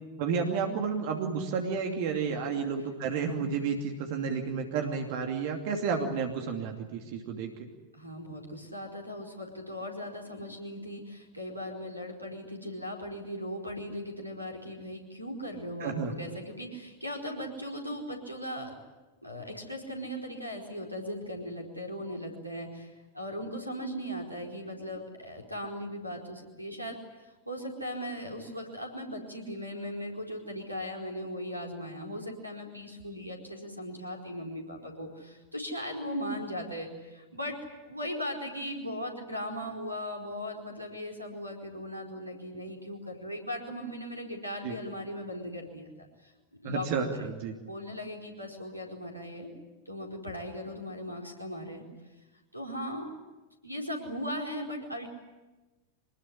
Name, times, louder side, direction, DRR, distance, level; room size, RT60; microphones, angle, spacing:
voice 1, 0.2-7.7 15.8-16.1 44.6-44.8 46.6-47.5, right 5 dB, 50° right, 3 dB, 2.7 m, -31 dB
voice 2, 7.9-18.7 19.2-27.0 27.5-37.6 37.8-46.3 46.6-47.3 47.7-49.5 49.9-51.8 52.5-53.1 53.6-55.1, equal, 90° right, 2 dB, 4.6 m, -38 dB
25.5 x 20.5 x 10.0 m, 1.1 s
figure-of-eight pair, 90°, 0 cm